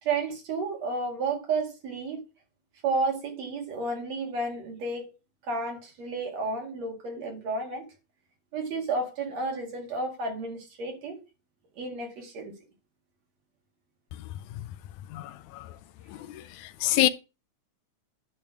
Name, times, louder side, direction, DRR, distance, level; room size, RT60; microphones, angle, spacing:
voice 1, 0.0-2.2 2.8-5.1 5.4-7.9 8.5-11.2 11.8-12.5, right 3 dB, 65° right, 3.2 m, -31 dB
voice 2, 14.1-14.7 15.1-15.8 16.1-17.1, left 14 dB, 90° left, 2.0 m, -29 dB
10.5 x 3.5 x 6.1 m
omnidirectional pair, 3.3 m